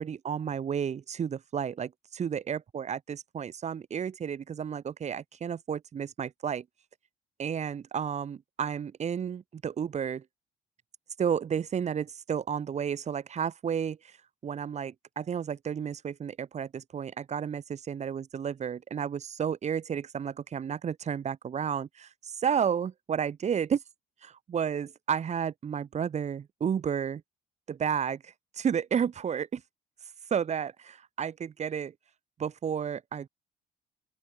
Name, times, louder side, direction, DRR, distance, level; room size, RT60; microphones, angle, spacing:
voice 1, 0.0-6.6 7.4-10.2 11.2-14.2 14.4-23.8 24.2-27.2 27.7-29.6 30.3-31.9 32.4-33.3, right 7 dB, 40° right, 3.4 m, -32 dB
open air
cardioid pair, 110°, 17 cm